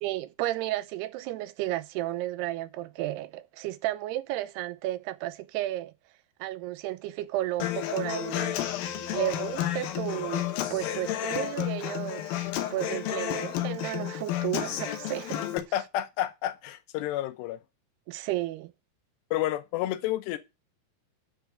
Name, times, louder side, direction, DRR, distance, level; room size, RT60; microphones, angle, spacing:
voice 1, 0.0-5.9 6.4-8.6 9.1-15.4 18.1-18.7, right 15 dB, 80° right, 2.7 m, -33 dB
Human voice / Acoustic guitar, 7.6-15.6, left 12 dB, 70° left, 2.7 m, -31 dB
voice 2, 15.5-17.6 19.3-20.4, left 13 dB, 90° left, 3.1 m, -30 dB
10.0 x 4.8 x 7.7 m
omnidirectional pair, 4.7 m